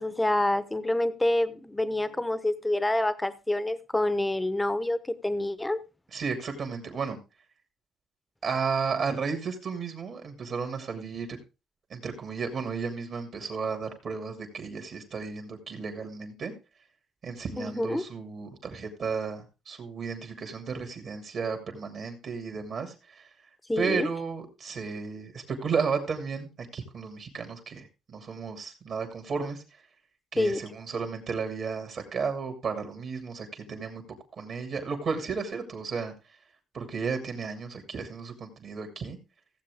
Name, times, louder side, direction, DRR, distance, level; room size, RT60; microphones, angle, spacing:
voice 1, 0.0-5.8 17.6-18.0 23.7-24.1 30.4-30.6, left 1 dB, 10° left, 1.0 m, -27 dB
voice 2, 6.1-7.2 8.4-11.4 11.9-16.5 17.2-23.3 23.8-29.6 30.3-34.0 34.3-36.1 36.7-39.2, right 5 dB, 55° right, 2.7 m, -33 dB
16.0 x 7.5 x 3.6 m
cardioid pair, 85°, 0 cm